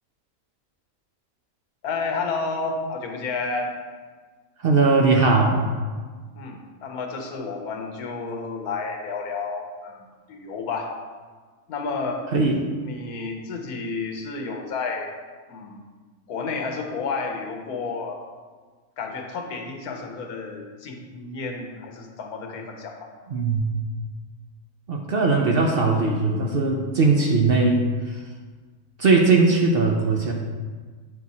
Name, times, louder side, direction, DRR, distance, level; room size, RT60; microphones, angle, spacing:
voice 1, 1.8-3.8 6.3-10.9 11.7-12.2 12.8-15.1 15.5-15.8 16.3-18.2 19.0-23.1, left 4 dB, 85° left, 3 dB, 1.4 m, -31 dB
voice 2, 4.6-5.6 12.3-12.6 23.3-23.6 24.9-28.2 29.0-30.3, right 3 dB, 55° right, 0 dB, 0.7 m, -19 dB
8.9 x 4.5 x 4.1 m, 1.5 s
omnidirectional pair, 1.5 m